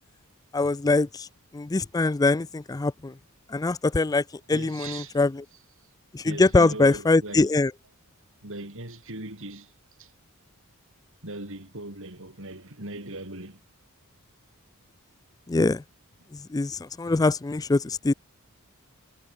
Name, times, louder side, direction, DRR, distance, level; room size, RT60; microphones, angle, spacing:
voice 1, 0.5-1.3 1.5-3.1 3.5-5.4 6.1-7.7 15.5-15.8 16.3-18.1, left 3 dB, 15° left, 0.4 m, -23 dB
voice 2, 4.5-5.2 5.8-5.9 6.2-7.5 8.4-9.7 10.0-10.1 11.2-13.6, right 2 dB, 60° right, 6.9 m, -39 dB
head